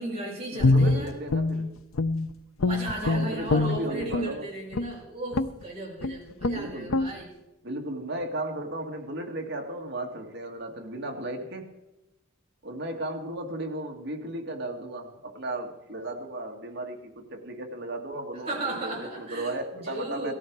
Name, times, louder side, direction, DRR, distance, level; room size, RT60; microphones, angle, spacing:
voice 1, 0.0-1.1 2.6-7.3 18.5-20.3, right 2 dB, 30° right, -4 dB, 5.6 m, -35 dB
voice 2, 0.5-1.7 3.0-4.5 6.5-6.9 7.6-11.7 12.6-20.3, right 1 dB, 50° right, 2 dB, 1.9 m, -35 dB
Guitar, 0.6-2.3 2.6-4.3 4.7-5.0 5.3-5.6 6.0-6.1 6.4-6.6 6.9-7.1, left 2 dB, 80° left, 0.7 m, -24 dB
18.0 x 14.5 x 4.7 m, 0.94 s
head